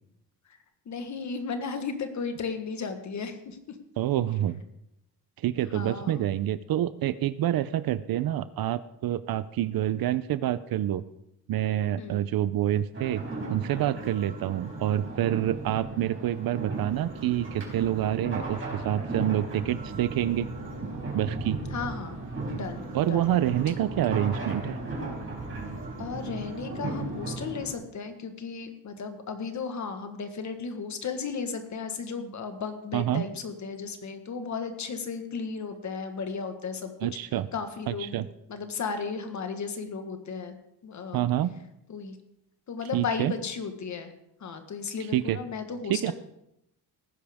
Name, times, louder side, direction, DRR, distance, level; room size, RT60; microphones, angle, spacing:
voice 1, 0.8-3.8 5.7-6.3 12.0-12.2 21.7-22.2 22.5-23.3 23.7-23.8 26.0-37.1 37.5-40.5 40.8-41.3 41.9-42.2 42.7-44.1 44.4-46.1, left 5 dB, 45° left, 7 dB, 1.4 m, -35 dB
voice 2, 4.0-4.6 5.4-11.0 11.5-13.2 13.5-20.5 21.1-21.6 22.9-24.8 32.9-33.2 37.0-37.5 37.9-38.2 41.1-41.5 42.9-43.3 45.1-45.4 45.9-46.1, right 12 dB, 60° right, 15 dB, 0.6 m, -27 dB
sound 1, 12.9-27.7, right 2 dB, 30° right, 4.5 m, -36 dB
18.5 x 10.0 x 3.6 m, 0.83 s
cardioid pair, 150°, 40 cm